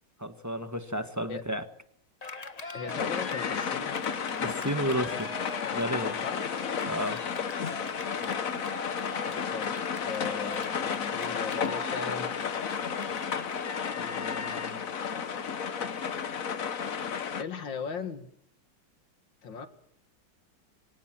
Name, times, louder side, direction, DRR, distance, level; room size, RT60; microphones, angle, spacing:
voice 1, 0.2-1.6 4.4-5.3 5.7-6.1 6.9-7.2, equal, 10° right, 9 dB, 1.1 m, -31 dB
Cheering, 2.2-14.9, left 3 dB, 25° left, 1.1 m, -42 dB
voice 2, 2.7-4.0 6.2-6.5 7.7-7.9 8.2-8.4 9.3-9.7 10.0-12.3 14.0-14.9 17.4-18.3 19.4-19.7, left 5 dB, 75° left, 9 dB, 2.6 m, -38 dB
sound 1, 2.9-17.4, left 7 dB, 50° left, 1.5 m, -32 dB
24.5 x 17.5 x 7.6 m, 0.66 s
omnidirectional pair, 2.1 m